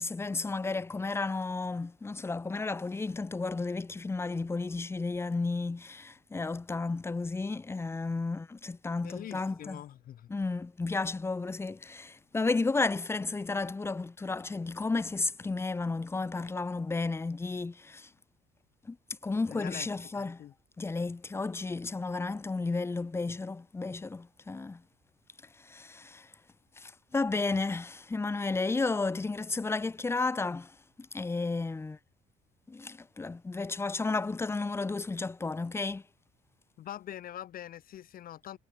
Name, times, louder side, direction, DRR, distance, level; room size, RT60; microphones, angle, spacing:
voice 1, 0.0-9.8 10.3-18.1 18.9-19.0 19.2-20.4 20.8-24.8 25.6-26.3 26.8-32.0 32.7-36.0, left 3 dB, 15° left, 0.7 m, -33 dB
voice 2, 9.0-10.3 19.5-19.9 20.1-20.5 36.8-38.6, left 11 dB, 60° left, 1.6 m, -44 dB
cardioid pair, 110°, 17 cm